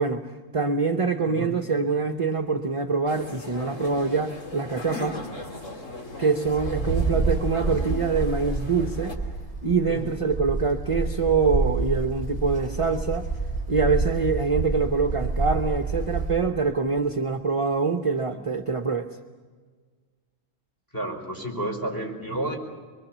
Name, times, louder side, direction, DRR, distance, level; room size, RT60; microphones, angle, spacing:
voice 1, 0.0-5.2 6.2-9.2 9.6-13.3 13.7-19.1, right 4 dB, 30° right, 5 dB, 0.8 m, -25 dB
voice 2, 1.3-1.6 9.9-10.1 18.3-18.4 20.9-22.6, right 1 dB, 15° left, 1 dB, 4.7 m, -31 dB
sound 1, 3.1-9.2, left 2 dB, 75° left, 3.0 m, -39 dB
Wind, 6.5-16.5, right 3 dB, 30° left, 3.7 m, -28 dB
24.5 x 23.5 x 7.3 m, 1.5 s
omnidirectional pair, 1.3 m